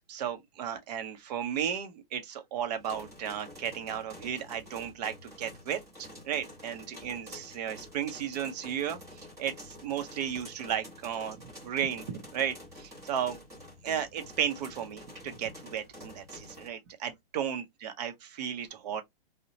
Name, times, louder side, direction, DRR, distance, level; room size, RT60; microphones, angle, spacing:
voice 1, 0.1-9.0 9.4-13.4 13.8-19.0, right 9 dB, 45° right, 0.6 m, -34 dB
sound 1, 2.8-16.7, left 1 dB, 10° right, 0.8 m, -48 dB
2.8 x 2.1 x 2.7 m
hypercardioid pair, 140°, 30 cm